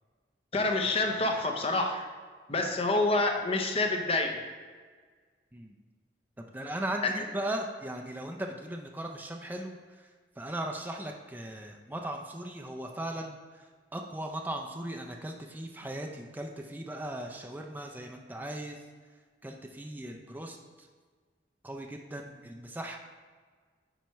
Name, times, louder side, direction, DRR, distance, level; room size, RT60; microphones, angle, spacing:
voice 1, 0.5-2.1 2.5-4.4 7.0-7.2, left 2 dB, 35° left, 3 dB, 0.7 m, -27 dB
voice 2, 6.4-10.1 10.4-13.7 13.9-18.8 19.4-20.9 21.6-23.0, right 1 dB, 10° right, 2 dB, 0.4 m, -38 dB
8.8 x 4.6 x 3.1 m, 1.5 s
head